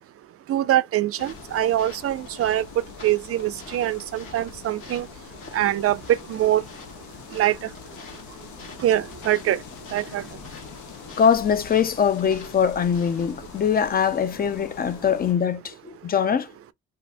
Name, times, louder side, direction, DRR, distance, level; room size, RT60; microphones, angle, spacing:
voice 1, 0.5-2.6 3.0-5.1 5.5-6.0 6.3-6.6 7.3-7.5 8.8-9.6 9.9-10.2, right 13 dB, 50° right, 0.4 m, -23 dB
sound 1, 1.2-15.3, left 7 dB, 75° left, 0.7 m, -43 dB
sound 2, 1.2-13.3, left 3 dB, 45° left, 1.3 m, -47 dB
voice 2, 11.2-16.5, left 7 dB, 30° left, 0.5 m, -22 dB
2.6 x 2.6 x 3.3 m
cardioid pair, 90°, 30 cm